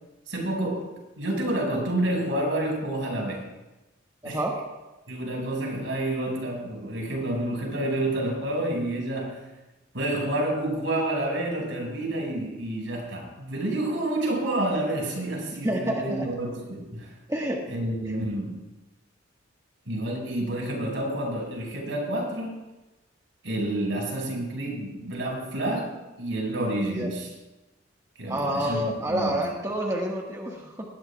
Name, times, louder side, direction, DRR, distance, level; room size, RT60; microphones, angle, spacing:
voice 1, 0.3-3.4 4.2-4.4 5.1-9.4 9.9-17.1 17.7-18.5 19.9-22.6 23.4-27.3 28.2-29.4, right 1 dB, 75° right, -1 dB, 5.8 m, -29 dB
voice 2, 4.2-4.5 15.6-16.2 17.3-17.6 18.0-18.1 26.9-27.1 28.3-30.8, right 1 dB, 15° right, -2 dB, 1.6 m, -28 dB
20.0 x 18.5 x 2.4 m, 1.0 s
head